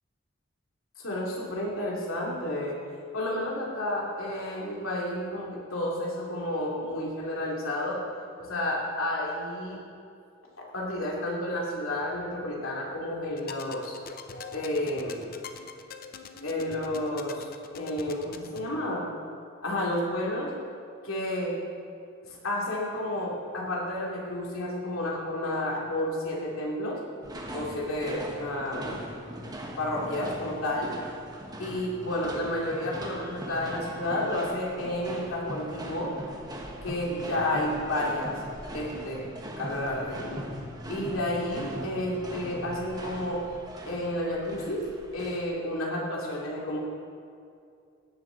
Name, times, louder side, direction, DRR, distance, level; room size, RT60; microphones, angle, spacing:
voice 1, 1.0-2.8 3.1-8.0 8.4-9.8 10.7-14.0 14.3-15.5 16.4-17.5 17.7-19.1 19.6-20.5 21.0-21.6 22.2-27.0 27.5-29.0 29.8-31.0 31.6-36.1 36.8-38.4 38.7-40.5 40.9-43.4 43.9-46.8, left 1 dB, 75° left, -3 dB, 2.9 m, -31 dB
sound 1, 13.3-18.7, left 5 dB, 45° left, 0.7 m, -44 dB
sound 2, 27.2-45.5, right 1 dB, 20° right, 1.3 m, -40 dB
16.5 x 11.0 x 4.0 m, 2.4 s
head